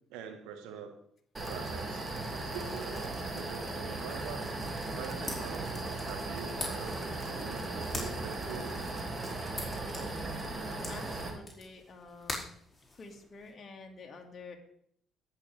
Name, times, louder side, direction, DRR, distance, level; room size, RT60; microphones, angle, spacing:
voice 1, 0.1-0.9 1.5-2.0 2.4-4.5 5.0-9.1, right 6 dB, 75° right, 6 dB, 1.5 m, -45 dB
sound 1, 1.3-11.3, right 2 dB, 30° right, 2.4 m, -37 dB
sound 2, 4.9-13.5, left 2 dB, 20° left, 4.8 m, -45 dB
voice 2, 10.5-12.5 12.9-14.6, left 3 dB, 45° left, 2 dB, 2.1 m, -48 dB
18.0 x 6.6 x 3.5 m, 0.67 s
hypercardioid pair, 50°, 0 cm